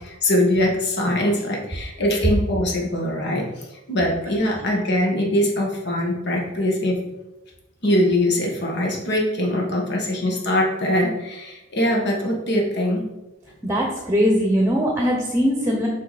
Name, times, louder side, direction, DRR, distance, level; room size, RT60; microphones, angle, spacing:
voice 1, 0.0-3.4 3.9-7.0 7.8-13.0, left 1 dB, 55° left, -1 dB, 1.6 m, -22 dB
voice 2, 13.6-15.9, equal, 15° right, 0 dB, 1.0 m, -21 dB
8.2 x 4.8 x 4.2 m, 0.98 s
head